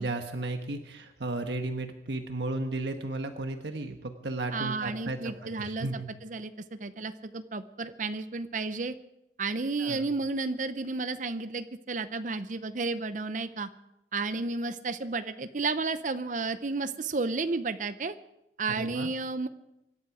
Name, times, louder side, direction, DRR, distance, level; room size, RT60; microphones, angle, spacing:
voice 1, 0.0-6.1 9.8-10.1 18.7-19.1, right 2 dB, 70° right, 6 dB, 1.3 m, -34 dB
voice 2, 4.5-8.9 9.4-13.7 14.1-18.1 18.6-19.5, right 3 dB, 45° right, 10 dB, 0.7 m, -32 dB
25.5 x 11.5 x 4.9 m, 0.86 s
head